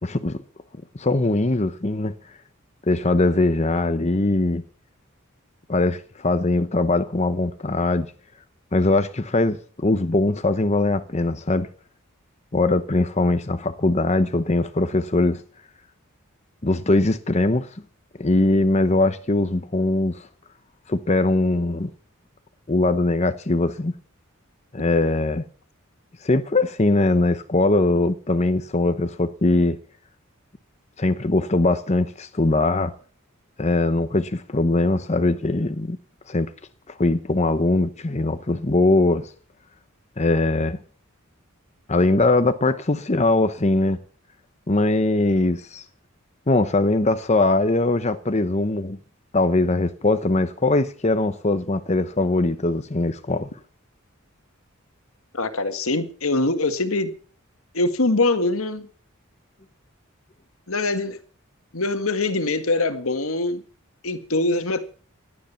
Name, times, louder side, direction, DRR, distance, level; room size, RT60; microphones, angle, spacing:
voice 1, 0.0-0.4 0.9-2.1 2.9-4.6 5.7-8.1 8.7-11.7 12.5-15.4 16.6-17.7 18.2-20.3 20.9-21.9 22.7-23.9 24.7-25.4 26.2-29.8 31.0-32.9 33.6-36.0 36.3-36.5 36.9-39.3 40.2-40.8 41.9-44.0 44.7-45.8 46.5-49.0 49.3-53.5, left 2 dB, 30° left, 0.9 m, -21 dB
voice 2, 55.3-57.1 57.7-58.9 60.7-61.2 61.7-63.6 64.0-64.9, left 2 dB, 75° left, 1.9 m, -23 dB
17.5 x 12.0 x 5.8 m
head